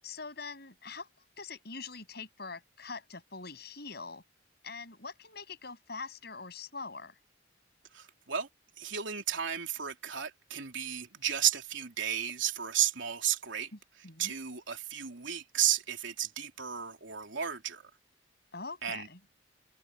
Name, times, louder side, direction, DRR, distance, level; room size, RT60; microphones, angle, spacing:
voice 1, 0.0-1.1 1.4-4.2 4.6-7.2 13.7-14.3 18.5-19.2, left 4 dB, 55° left, 7.5 m, -43 dB
voice 2, 7.9-8.5 8.8-13.7 14.2-17.8 18.8-19.1, right 10 dB, 75° right, 3.3 m, -33 dB
head